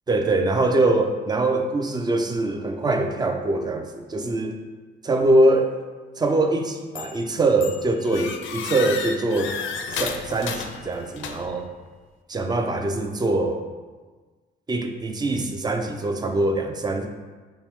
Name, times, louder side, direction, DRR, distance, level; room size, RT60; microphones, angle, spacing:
voice 1, 0.1-4.5 5.0-5.7 6.2-9.6 9.9-11.7 12.3-13.6 14.7-17.1, right 2 dB, 20° right, 5 dB, 0.4 m, -23 dB
sound 1, 7.0-7.3 7.6-11.6, left 6 dB, 75° left, 0.4 m, -33 dB
5.3 x 2.1 x 3.0 m, 1.4 s
cardioid pair, 90°, 20 cm